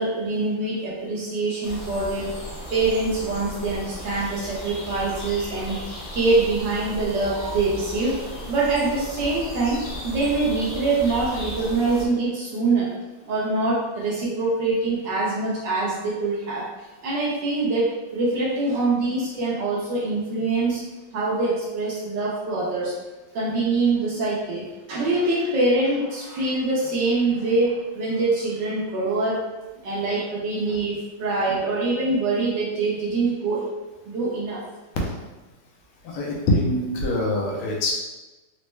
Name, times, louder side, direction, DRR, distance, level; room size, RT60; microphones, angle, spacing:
voice 1, 0.0-2.3 2.7-5.8 6.1-8.2 8.5-12.9 13.3-16.6 17.0-20.8 21.1-22.9 23.3-29.4 29.8-33.6 34.1-34.6, right 3 dB, 65° right, -6 dB, 1.2 m, -24 dB
sound 1, 1.6-12.1, equal, 60° left, 0.6 m, -36 dB
voice 2, 36.0-37.9, left 1 dB, 80° left, -2 dB, 1.6 m, -24 dB
4.2 x 2.1 x 3.1 m, 1.1 s
omnidirectional pair, 2.4 m